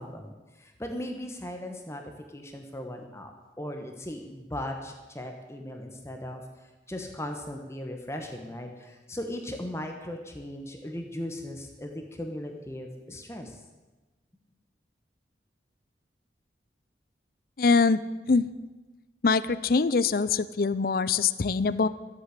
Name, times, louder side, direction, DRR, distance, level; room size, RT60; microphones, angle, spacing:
voice 1, 0.0-2.0 2.3-6.4 6.9-13.6, left 1 dB, 15° left, 3 dB, 1.1 m, -38 dB
voice 2, 17.6-18.0 18.3-18.4 19.2-21.9, left 4 dB, 55° left, 15 dB, 0.5 m, -23 dB
13.5 x 8.3 x 8.2 m, 1.2 s
head